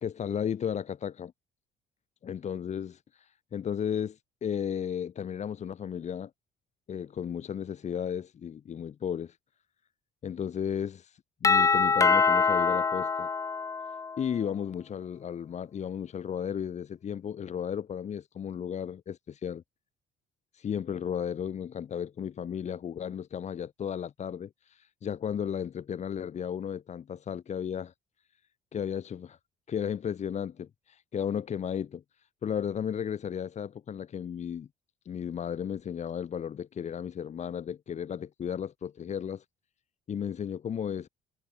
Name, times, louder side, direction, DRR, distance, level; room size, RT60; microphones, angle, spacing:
voice 1, 0.0-1.3 2.3-6.3 6.9-9.4 10.2-13.3 14.2-19.6 20.5-27.9 28.7-29.4 29.7-32.0 32.4-34.7 35.0-39.4 40.1-41.1, left 8 dB, 45° left, 1.6 m, -34 dB
Doorbell, 11.4-14.3, left 5 dB, 20° left, 0.4 m, -24 dB
cardioid pair, 110°, 17 cm